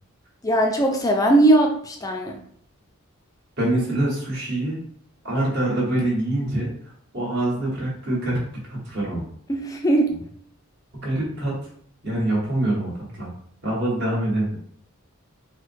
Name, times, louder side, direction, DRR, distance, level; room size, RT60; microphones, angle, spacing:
voice 1, 0.4-2.4 9.5-10.1, right 1 dB, 15° left, 2 dB, 0.4 m, -19 dB
voice 2, 3.6-4.8 5.2-6.7 7.1-8.4 8.6-9.2 10.1-10.2 10.9-11.5 12.0-13.3 13.6-14.6, right 1 dB, 55° right, -4 dB, 1.7 m, -25 dB
4.4 x 2.2 x 4.4 m, 0.64 s
head